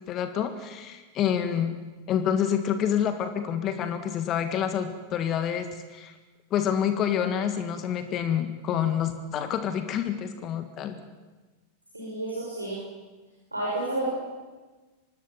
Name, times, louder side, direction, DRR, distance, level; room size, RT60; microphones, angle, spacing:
voice 1, 0.1-1.7 2.1-6.1 6.5-10.9, left 9 dB, 35° left, 9 dB, 1.7 m, -27 dB
voice 2, 11.9-12.8 13.5-14.1, right 2 dB, 85° right, -5 dB, 6.2 m, -30 dB
25.0 x 20.0 x 7.3 m, 1.3 s
figure-of-eight pair, 90°, 0 cm